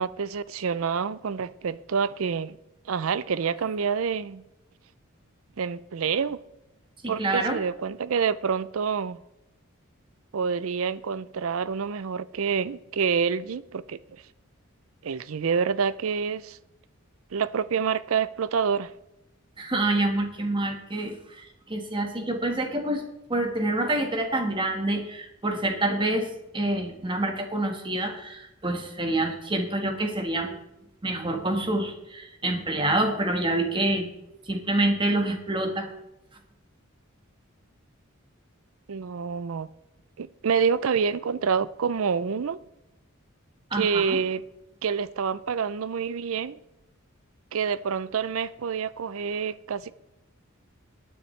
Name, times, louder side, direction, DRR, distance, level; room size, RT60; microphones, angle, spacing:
voice 1, 0.0-2.6 2.9-4.4 5.6-6.4 7.1-9.2 10.3-14.0 15.0-16.6 17.3-18.9 38.9-39.7 40.2-42.6 43.7-44.4 44.8-46.6 47.5-49.9, right 6 dB, 70° right, 0.5 m, -27 dB
voice 2, 7.0-7.6 19.6-23.0 23.3-30.5 31.0-34.1 34.5-35.9 43.7-44.2, right 2 dB, 25° right, 1.5 m, -27 dB
18.5 x 9.6 x 3.3 m
head